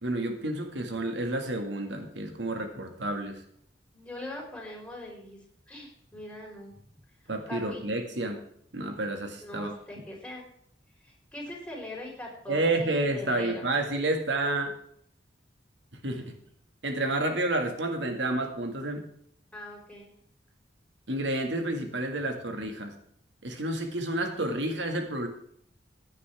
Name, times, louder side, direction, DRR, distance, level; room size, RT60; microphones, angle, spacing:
voice 1, 0.0-3.4 7.3-8.4 8.7-9.7 12.5-14.7 16.0-16.4 16.8-19.0 21.1-22.9 23.4-25.3, right 2 dB, 75° right, 4 dB, 1.9 m, -30 dB
voice 2, 3.9-5.4 5.7-6.7 7.5-7.8 9.4-10.4 11.0-13.6 19.5-20.1, left 1 dB, 5° left, -2 dB, 4.4 m, -41 dB
16.0 x 9.6 x 3.5 m, 0.67 s
head